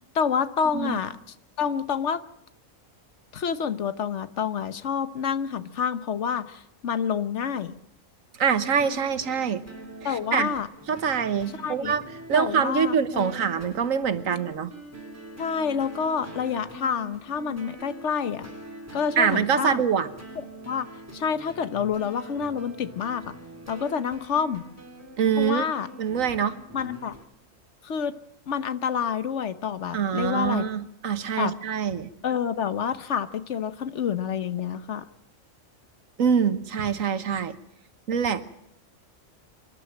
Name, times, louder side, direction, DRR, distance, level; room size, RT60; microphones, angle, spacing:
voice 1, 0.1-1.2 1.6-2.2 3.3-7.7 10.0-10.7 11.6-11.9 12.3-13.3 15.4-18.5 18.9-19.8 20.7-20.9 21.1-23.3 23.7-24.7 25.4-25.9 26.7-27.1 27.8-28.1 28.5-30.7 31.4-31.6 32.2-35.0, left 7 dB, 65° left, 13 dB, 1.2 m, -28 dB
voice 2, 8.4-9.6 10.0-10.5 10.9-12.0 12.3-14.7 19.2-20.1 25.2-25.6 26.0-26.6 29.9-32.1 36.2-37.5 38.1-38.4, right 7 dB, 90° right, 12 dB, 1.6 m, -24 dB
sound 1, 8.5-27.2, right 1 dB, 10° right, 3.5 m, -44 dB
26.0 x 11.5 x 9.0 m, 0.79 s
omnidirectional pair, 1.3 m